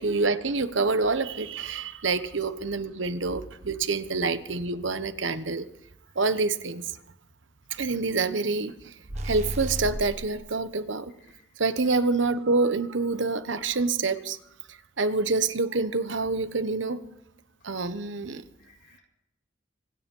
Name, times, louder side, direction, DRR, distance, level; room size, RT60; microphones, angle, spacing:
voice 1, 0.0-5.7 6.2-6.8 7.7-8.9 9.2-11.1 11.6-14.4 15.0-17.0 17.6-18.4, right 3 dB, 75° right, 11 dB, 1.1 m, -27 dB
sound 1, 9.1-10.3, right 1 dB, 35° right, 1.2 m, -33 dB
voice 2, 11.2-12.0 17.6-17.7 18.6-19.0, left 5 dB, 70° left, -1 dB, 7.3 m, -60 dB
25.5 x 9.9 x 5.5 m, 0.85 s
head